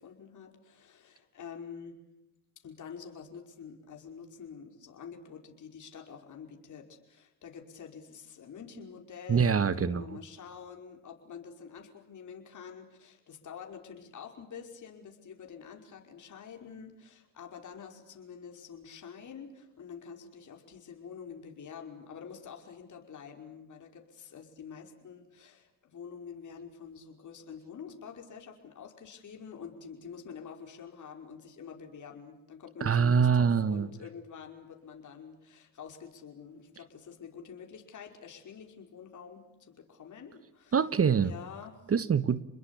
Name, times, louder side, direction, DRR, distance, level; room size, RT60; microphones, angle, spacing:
voice 1, 0.0-2.0 2.6-40.8 41.2-41.9, left 6 dB, 55° left, 3 dB, 5.3 m, -47 dB
voice 2, 9.3-10.2 32.8-33.9 40.7-41.3 41.9-42.4, right 6 dB, 40° right, 15 dB, 1.4 m, -25 dB
29.5 x 21.5 x 8.6 m, 0.82 s
supercardioid pair, 65°, 36 cm